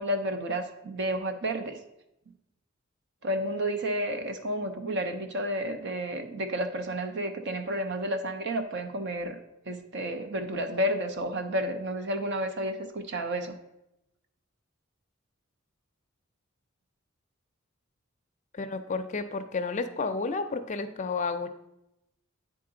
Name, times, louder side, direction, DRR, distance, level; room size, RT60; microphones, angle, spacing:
voice 1, 0.0-1.8 3.2-9.4 9.7-13.6, equal, 60° right, 7 dB, 0.7 m, -31 dB
voice 2, 18.5-21.5, left 4 dB, 35° left, 9 dB, 0.4 m, -31 dB
9.5 x 3.8 x 3.8 m, 0.87 s
head